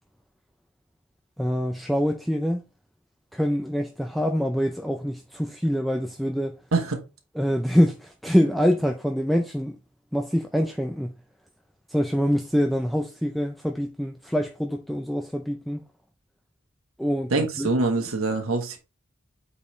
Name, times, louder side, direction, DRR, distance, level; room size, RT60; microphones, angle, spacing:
voice 1, 1.4-2.6 3.3-6.6 7.4-9.8 10.1-11.2 11.9-15.8 17.0-17.7, equal, ahead, 0.5 m, -25 dB
voice 2, 17.3-18.8, right 3 dB, 85° right, 1.3 m, -24 dB
8.6 x 4.3 x 3.2 m
head